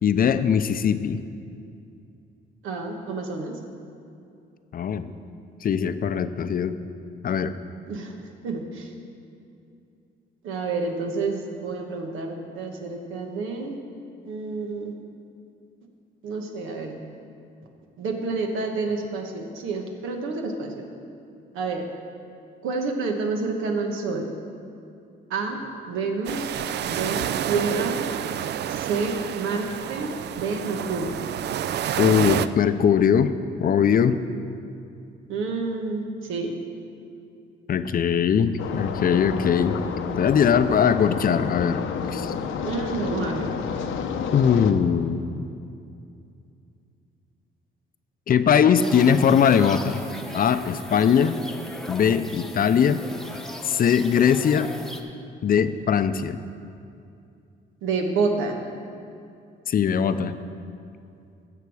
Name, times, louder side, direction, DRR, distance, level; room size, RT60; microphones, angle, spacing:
voice 1, 0.0-1.2 4.7-5.1 5.6-6.8 7.2-7.5 32.0-33.3 33.6-34.2 37.7-39.8 40.2-41.8 42.1-42.3 44.3-45.3 48.3-50.0 50.3-51.4 51.9-53.0 53.6-54.7 55.4-56.4 59.7-60.3, left 7 dB, 45° left, 11 dB, 0.5 m, -20 dB
voice 2, 2.6-3.6 7.9-8.9 10.4-13.8 14.2-14.9 16.2-17.0 18.0-20.8 21.5-21.9 22.6-24.3 25.3-26.5 26.8-28.1 28.7-31.2 35.3-36.6 42.6-43.6 57.8-58.6, right 4 dB, 85° right, 3 dB, 1.3 m, -29 dB
sound 1, 26.2-32.5, right 10 dB, 60° right, 0.4 m, -29 dB
sound 2, 38.6-44.7, left 6 dB, 80° left, 0.8 m, -30 dB
sound 3, 48.8-55.0, left 1 dB, ahead, 0.9 m, -38 dB
15.0 x 6.7 x 4.8 m, 2.5 s
cardioid pair, 90°, 20 cm